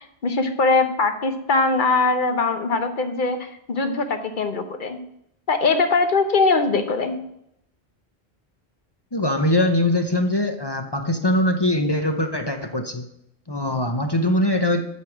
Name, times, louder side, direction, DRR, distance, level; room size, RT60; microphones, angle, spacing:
voice 1, 0.0-5.0 5.5-7.2, left 3 dB, 50° left, 7 dB, 1.0 m, -21 dB
voice 2, 9.1-13.1 13.5-14.8, left 1 dB, 25° left, 4 dB, 0.6 m, -22 dB
8.3 x 4.7 x 7.3 m, 0.76 s
omnidirectional pair, 1.1 m